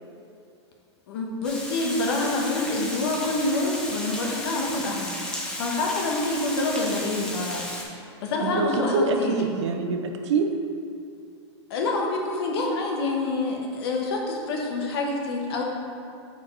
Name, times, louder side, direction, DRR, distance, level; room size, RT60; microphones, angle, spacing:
voice 1, 1.1-7.7 8.2-9.4 11.7-15.6, left 2 dB, 60° left, 0 dB, 1.2 m, -27 dB
Water, 1.4-7.8, left 1 dB, 5° left, 0.7 m, -34 dB
voice 2, 8.4-10.5, right 4 dB, 80° right, 4 dB, 0.8 m, -25 dB
5.2 x 4.5 x 5.3 m, 2.5 s
supercardioid pair, 155°, 15 cm